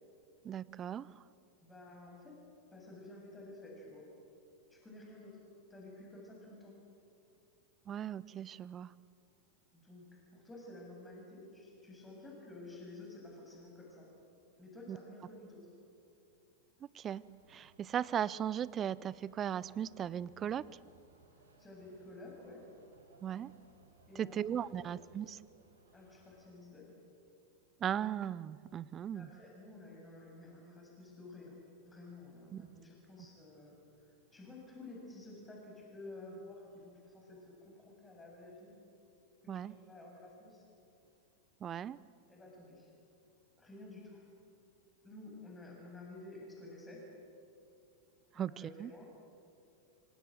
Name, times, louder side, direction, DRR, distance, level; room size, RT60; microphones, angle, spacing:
voice 1, 0.4-1.1 7.9-8.9 14.9-15.0 16.9-17.2 17.5-20.6 23.2-23.5 24.2-25.4 27.8-29.3 32.5-32.7 39.5-39.7 41.6-42.0 48.4-48.5 48.8-48.9, right 9 dB, 25° right, 21 dB, 0.7 m, -37 dB
voice 2, 1.6-2.4 2.7-4.1 4.7-5.4 5.7-6.8 9.7-14.1 14.6-15.7 21.6-22.6 24.1-25.0 25.9-26.9 29.1-31.6 31.8-33.8 34.1-38.7 39.4-40.6 42.3-42.9 43.6-44.3 45.0-47.0 48.3-49.1, left 2 dB, 10° left, -1 dB, 7.6 m, -52 dB
sound 1, 17.0-26.6, right 2 dB, 70° right, 6.7 m, -66 dB
26.0 x 25.0 x 7.8 m, 2.6 s
figure-of-eight pair, 90°, 0 cm